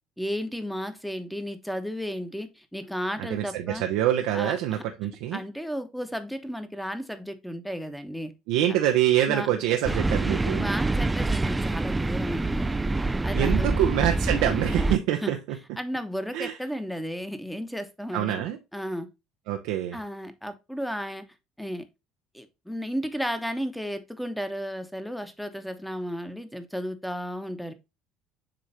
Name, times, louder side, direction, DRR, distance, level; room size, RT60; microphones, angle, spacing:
voice 1, 0.2-3.8 4.3-4.8 5.3-8.3 8.7-8.8 9.3-9.5 10.5-12.7 13.2-13.7 15.2-15.3 15.8-18.4 18.7-19.1 19.9-21.3 21.6-21.9 22.3-27.7, equal, ahead, 1.1 m, -33 dB
voice 2, 3.2-5.4 8.5-10.7 13.3-15.4 16.3-16.6 18.1-18.6 19.5-20.0, right 11 dB, 70° right, 0.7 m, -25 dB
sound 1, 9.8-15.0, right 2 dB, 15° right, 0.4 m, -26 dB
7.6 x 3.2 x 4.2 m
hypercardioid pair, 75°, 0 cm